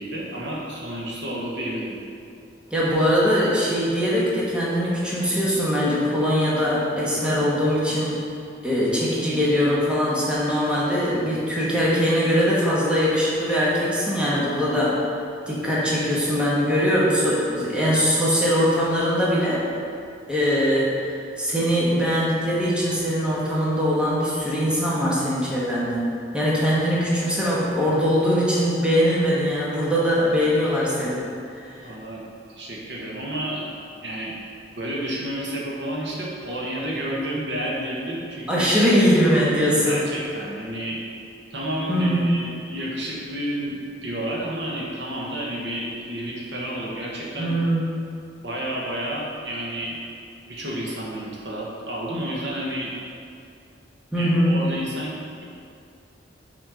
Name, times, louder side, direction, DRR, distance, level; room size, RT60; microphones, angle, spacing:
voice 1, 0.0-2.0 8.9-9.0 31.8-32.2 32.5-33.6 34.0-34.3 34.7-38.7 39.8-41.0 41.5-47.5 48.4-50.0 50.5-52.9 54.2-55.1, right 1 dB, 75° right, -4 dB, 1.2 m, -30 dB
voice 2, 2.7-8.2 8.6-15.0 15.5-19.6 20.3-21.0 21.4-26.0 26.3-31.2 31.6-31.8 38.5-40.1 41.9-42.2 47.4-48.0 54.1-54.6, equal, 5° right, -8 dB, 1.2 m, -21 dB
6.1 x 4.3 x 5.0 m, 2.4 s
head